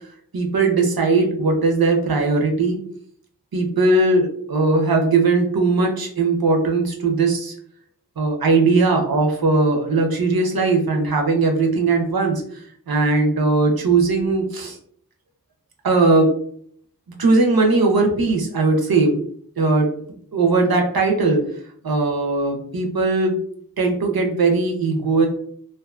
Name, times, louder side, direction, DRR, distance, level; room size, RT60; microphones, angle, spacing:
voice 1, 0.3-2.8 3.5-7.5 8.2-14.8 15.8-16.4 17.2-19.2 19.6-19.9 20.3-21.4 21.8-23.4 23.8-25.3, right 3 dB, 70° right, 3 dB, 0.6 m, -19 dB
2.5 x 2.3 x 2.4 m, 0.62 s
wide cardioid pair, 40°, 38 cm